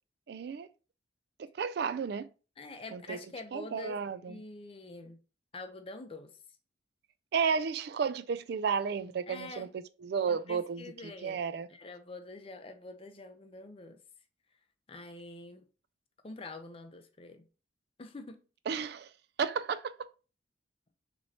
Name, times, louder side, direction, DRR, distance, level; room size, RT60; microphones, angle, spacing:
voice 1, 0.3-0.7 1.4-2.3 2.9-3.2 3.5-4.4 7.3-11.7 18.7-19.1 19.4-19.9, right 6 dB, 55° right, 0.3 m, -33 dB
voice 2, 2.6-4.0 4.3-5.2 5.5-6.4 9.3-9.7 10.3-11.4 11.7-14.0 14.9-15.6 16.2-17.5 18.0-18.4, left 2 dB, 30° left, 0.6 m, -46 dB
6.2 x 3.0 x 2.7 m
head